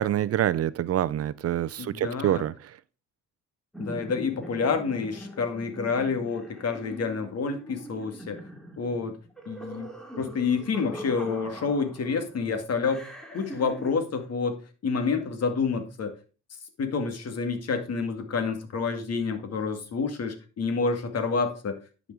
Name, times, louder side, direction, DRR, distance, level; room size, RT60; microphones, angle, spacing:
voice 1, 0.0-2.8, right 11 dB, 55° right, 0.5 m, -26 dB
voice 2, 1.8-2.4 3.8-8.4 8.8-9.2 9.5-9.9 10.2-14.6 14.8-16.1 16.8-21.8, left 5 dB, 55° left, 2.2 m, -28 dB
sound 1, 3.7-12.3 12.9-14.0, equal, ahead, 2.4 m, -42 dB
10.5 x 5.2 x 4.8 m
cardioid pair, 90°, 30 cm